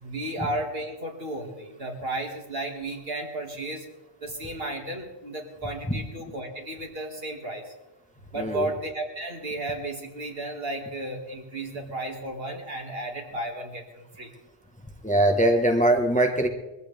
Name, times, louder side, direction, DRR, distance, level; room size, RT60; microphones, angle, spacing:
voice 1, 0.0-3.8 4.2-7.6 8.3-14.3, right 1 dB, 60° right, 1 dB, 2.6 m, -33 dB
voice 2, 8.4-8.7 15.0-16.5, right 1 dB, 5° left, 3 dB, 1.3 m, -21 dB
22.0 x 15.0 x 3.5 m, 1.1 s
omnidirectional pair, 1.1 m